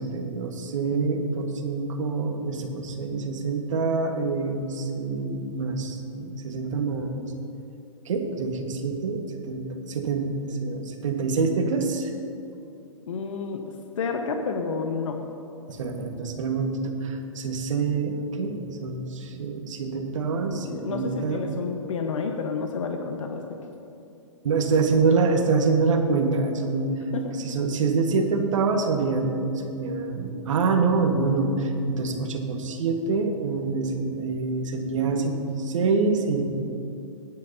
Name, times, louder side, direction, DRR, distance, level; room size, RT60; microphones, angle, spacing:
voice 1, 0.0-7.3 8.1-10.3 10.6-12.1 15.7-21.4 24.4-26.9 27.4-36.4, right 4 dB, 70° right, 4 dB, 1.6 m, -26 dB
voice 2, 13.1-15.2 20.7-23.6 27.1-27.3, left 5 dB, 70° left, 3 dB, 1.2 m, -30 dB
18.5 x 10.5 x 2.8 m, 2.7 s
hypercardioid pair, 120°, 17 cm